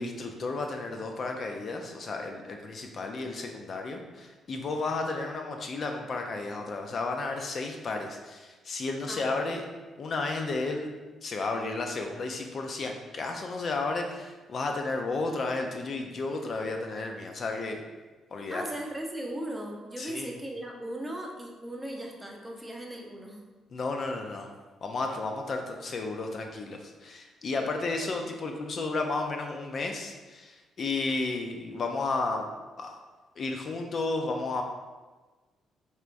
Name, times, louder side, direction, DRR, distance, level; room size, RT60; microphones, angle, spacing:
voice 1, 0.0-9.6 10.0-10.9 11.2-17.8 18.3-18.6 20.0-20.3 23.7-24.5 24.8-32.5 32.8-33.0 33.4-34.6, left 3 dB, 50° left, 3 dB, 0.4 m, -33 dB
voice 2, 9.1-9.6 18.5-23.4, right 1 dB, 10° right, 0 dB, 0.7 m, -38 dB
4.1 x 3.5 x 2.5 m, 1.3 s
cardioid pair, 90°, 0 cm